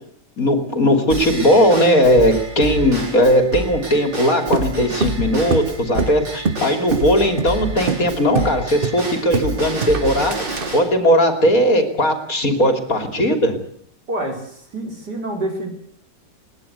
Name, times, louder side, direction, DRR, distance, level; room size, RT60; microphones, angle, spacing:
voice 1, 0.4-10.4 10.7-13.6, equal, 50° left, 6 dB, 3.3 m, -17 dB
Drum kit / Drum / Bell, 1.1-10.8, right 2 dB, 80° right, 5.3 m, -29 dB
sound 1, 4.5-6.7 6.9-7.1 7.4-7.6 7.9-8.1 8.3-8.5 8.8-9.5 9.8-10.7, right 4 dB, 35° right, 1.1 m, -23 dB
voice 2, 14.1-15.7, right 1 dB, 60° right, 2 dB, 5.5 m, -27 dB
21.5 x 19.0 x 8.1 m, 0.64 s
omnidirectional pair, 2.0 m